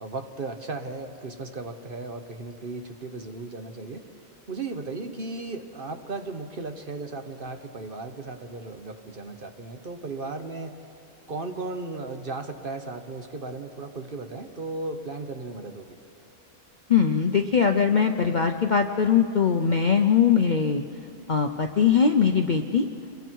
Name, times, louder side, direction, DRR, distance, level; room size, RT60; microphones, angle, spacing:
voice 1, 0.0-4.0 4.5-10.8 11.3-16.0, right 3 dB, 40° right, 6 dB, 1.2 m, -36 dB
voice 2, 16.9-20.8 21.3-22.9, left 6 dB, 45° left, 5 dB, 0.6 m, -21 dB
28.5 x 22.0 x 4.7 m, 3.0 s
omnidirectional pair, 1.5 m